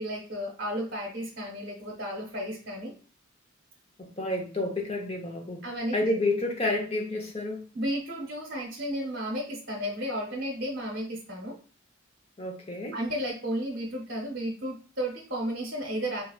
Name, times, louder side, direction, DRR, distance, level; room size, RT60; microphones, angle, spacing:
voice 1, 0.0-2.9 5.6-6.1 7.7-11.6 12.9-16.2, equal, 60° right, -2 dB, 0.9 m, -33 dB
voice 2, 4.0-5.6 5.9-7.6 12.4-12.9, left 2 dB, 30° left, 1 dB, 0.8 m, -30 dB
4.7 x 2.3 x 2.3 m, 0.39 s
head